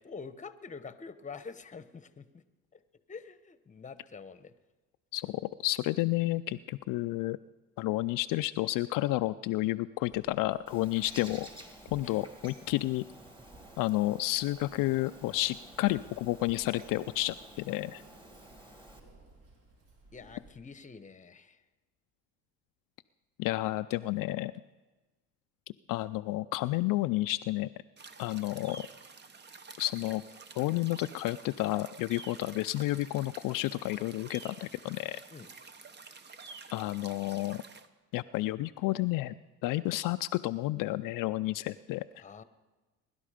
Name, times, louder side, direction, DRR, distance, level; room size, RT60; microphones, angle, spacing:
voice 1, 0.0-2.4 2.7-2.8 3.1-4.5 12.0-12.5 20.1-21.6 35.3-35.5 42.2-42.4, left 5 dB, 20° left, 12 dB, 1.0 m, -46 dB
voice 2, 5.1-7.4 7.8-11.5 11.9-13.0 13.8-18.0 23.4-24.5 25.9-27.7 28.2-28.8 29.8-30.2 30.6-35.2 36.7-37.6 38.1-39.3 39.6-42.0, left 18 dB, 65° left, 10 dB, 0.5 m, -31 dB
Keys jangling, 10.0-20.5, right 2 dB, 60° right, 4.2 m, -58 dB
Bird, 10.7-19.0, right 1 dB, 15° right, 2.3 m, -52 dB
sound 1, 28.0-37.9, right 4 dB, 30° right, 1.0 m, -50 dB
22.5 x 11.5 x 5.0 m, 1.2 s
supercardioid pair, 90°, 35 cm